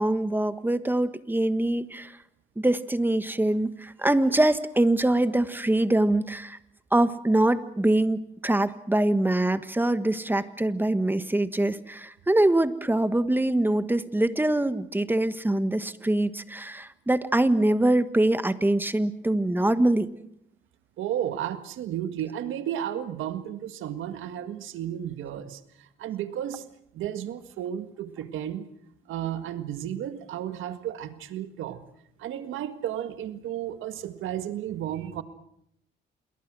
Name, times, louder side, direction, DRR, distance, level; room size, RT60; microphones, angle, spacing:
voice 1, 0.0-2.1 2.6-6.6 6.9-20.1, right 1 dB, 10° right, 12 dB, 1.4 m, -24 dB
voice 2, 21.0-26.6 26.9-28.6 29.1-31.8 32.2-35.2, right 10 dB, 85° right, 10 dB, 1.8 m, -33 dB
27.5 x 22.0 x 6.2 m, 0.76 s
cardioid pair, 90°, 20 cm